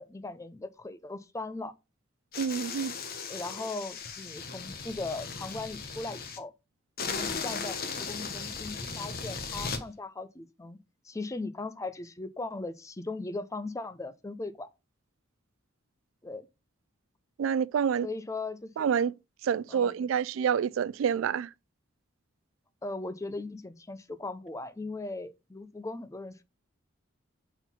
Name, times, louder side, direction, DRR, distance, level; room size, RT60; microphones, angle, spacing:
voice 1, 0.0-1.7 3.3-6.5 7.0-10.8 11.0-14.7 16.2-16.5 18.0-18.7 19.7-20.0 22.8-26.4, left 2 dB, 15° left, 0.4 m, -38 dB
sound 1, 2.3-6.4 7.0-9.8, left 5 dB, 50° left, 1.0 m, -37 dB
voice 2, 2.4-2.9 17.4-18.1 18.8-19.1 19.4-21.5, right 7 dB, 75° right, 0.3 m, -27 dB
4.5 x 3.9 x 5.5 m
head